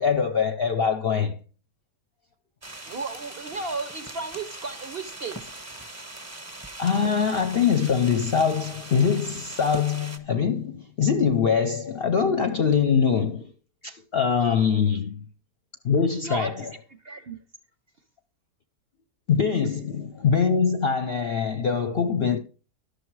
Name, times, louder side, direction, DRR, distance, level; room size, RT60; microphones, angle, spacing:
voice 1, 0.0-1.4 6.8-13.5 13.8-15.2 15.8-16.7 19.3-22.4, left 6 dB, 55° left, 0.7 m, -23 dB
sound 1, 2.6-10.2, right 2 dB, 15° right, 0.8 m, -41 dB
voice 2, 2.8-5.5 14.9-15.0 16.2-16.7 17.0-17.4, right 3 dB, 55° right, 0.7 m, -34 dB
11.5 x 6.7 x 4.7 m
omnidirectional pair, 1.7 m